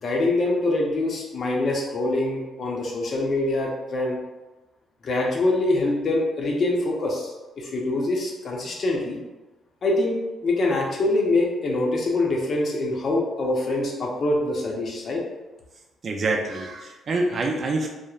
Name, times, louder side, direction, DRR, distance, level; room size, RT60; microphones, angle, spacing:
voice 1, 0.0-4.2 5.0-9.2 9.8-15.2, left 2 dB, 50° left, -1 dB, 0.6 m, -24 dB
voice 2, 16.0-17.9, right 2 dB, 50° right, 1 dB, 0.4 m, -26 dB
3.0 x 2.0 x 2.3 m, 1.1 s
cardioid pair, 90°, 0 cm